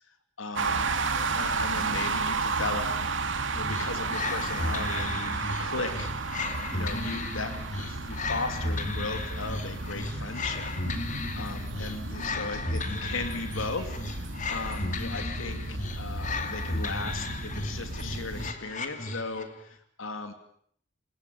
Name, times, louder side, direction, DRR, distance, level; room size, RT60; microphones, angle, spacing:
voice 1, 0.1-0.9 1.2-2.9 3.5-6.1 6.7-20.3, left 3 dB, 90° left, 7 dB, 2.8 m, -37 dB
sound 1, 0.6-18.5, right 3 dB, 75° right, 2.7 m, -33 dB
sound 2, 3.6-19.6, left 2 dB, 40° left, 2.5 m, -35 dB
29.5 x 19.0 x 9.4 m, 0.65 s
head